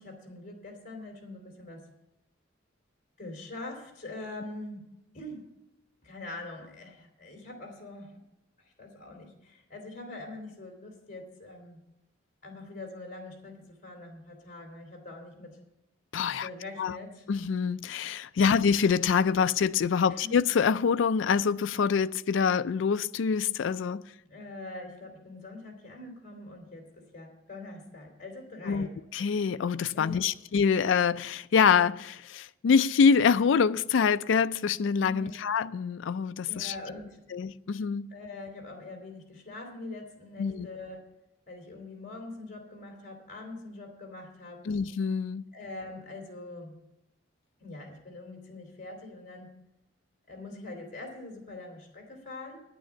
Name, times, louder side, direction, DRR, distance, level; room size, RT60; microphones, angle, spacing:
voice 1, 0.0-1.9 3.2-5.5 6.0-8.2 8.6-11.8 12.4-15.6 16.4-17.3 20.1-20.3 24.3-28.9 29.9-30.2 35.0-35.3 36.5-37.2 38.1-41.1 41.5-44.7 45.5-46.8 47.6-49.5 50.3-52.6, left 2 dB, 40° left, 3.2 m, -43 dB
voice 2, 16.1-16.5 16.8-17.0 17.3-24.1 28.7-28.9 29.1-36.7 37.3-38.1 40.4-40.7 44.7-45.4, left 6 dB, 70° left, 0.4 m, -25 dB
10.0 x 9.0 x 7.0 m
head